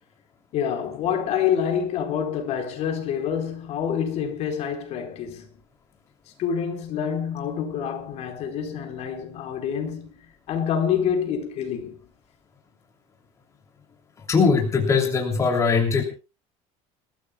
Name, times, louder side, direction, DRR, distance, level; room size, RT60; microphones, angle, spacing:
voice 1, 0.5-5.5 6.4-12.0, left 8 dB, 55° left, 4.2 m, -27 dB
voice 2, 14.3-16.0, left 5 dB, 20° left, 2.9 m, -20 dB
29.0 x 14.5 x 2.3 m
cardioid pair, 140°, 14 cm